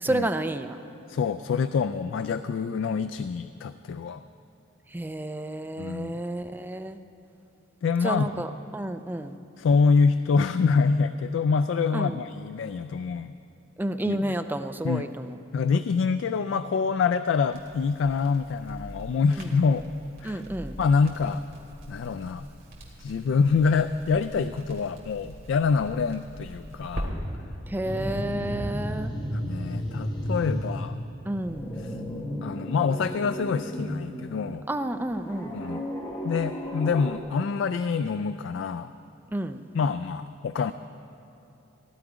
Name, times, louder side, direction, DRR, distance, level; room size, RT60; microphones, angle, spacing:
voice 1, 0.0-0.8 4.9-7.0 8.0-9.3 11.9-12.2 13.8-15.3 19.4-19.5 20.2-20.8 27.7-29.1 31.3-31.7 34.7-35.6 39.3-39.6, right 1 dB, 10° right, 8 dB, 0.4 m, -30 dB
voice 2, 1.1-4.2 5.8-6.2 7.8-8.4 9.6-13.3 14.1-14.4 14.8-15.1 15.5-19.9 20.2-20.4 20.8-21.4 21.9-22.5 23.0-27.1 29.3-31.0 31.8-32.0 32.4-34.7 35.5-35.8 36.2-38.9 39.7-40.7, left 5 dB, 65° left, 11 dB, 0.3 m, -26 dB
Crackle, 17.5-27.0, equal, 45° right, 2.5 m, -43 dB
sound 1, 27.8-31.0 31.3-34.4 35.2-37.2, equal, 20° left, 1.4 m, -33 dB
16.0 x 11.5 x 5.0 m, 2.8 s
head